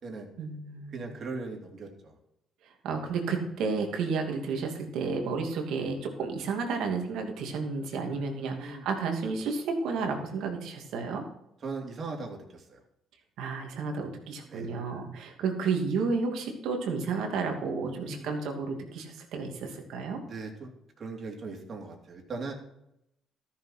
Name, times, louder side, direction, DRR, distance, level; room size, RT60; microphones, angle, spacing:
voice 1, 0.4-1.1 2.8-11.2 13.4-20.2, right 4 dB, 75° right, 3 dB, 2.7 m, -32 dB
voice 2, 0.9-2.1 8.3-8.8 11.6-12.8 14.5-14.7 17.8-18.3 20.3-20.7 21.0-22.5, right 3 dB, 45° right, 1 dB, 3.5 m, -39 dB
13.5 x 7.2 x 5.9 m, 0.81 s
supercardioid pair, 80°, 0 cm